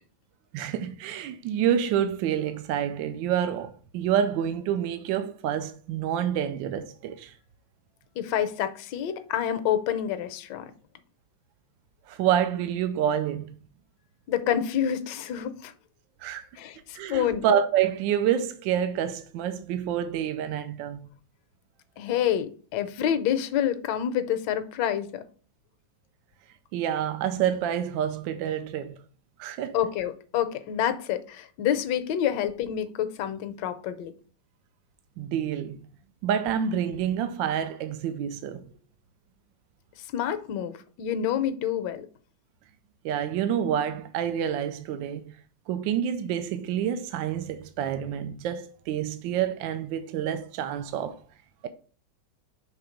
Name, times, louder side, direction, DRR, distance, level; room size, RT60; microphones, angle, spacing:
voice 1, 0.5-7.3 12.1-13.5 16.2-16.5 16.9-21.1 26.7-29.0 29.4-29.8 35.2-35.8 36.2-38.7 43.0-45.3 45.7-51.2, right 9 dB, 80° right, 1.3 m, -28 dB
voice 2, 8.2-10.7 14.3-15.7 16.6-17.4 22.0-25.2 29.7-34.1 40.1-40.7 41.0-42.1, left 10 dB, 75° left, 1.2 m, -28 dB
5.8 x 3.4 x 5.0 m
omnidirectional pair, 2.1 m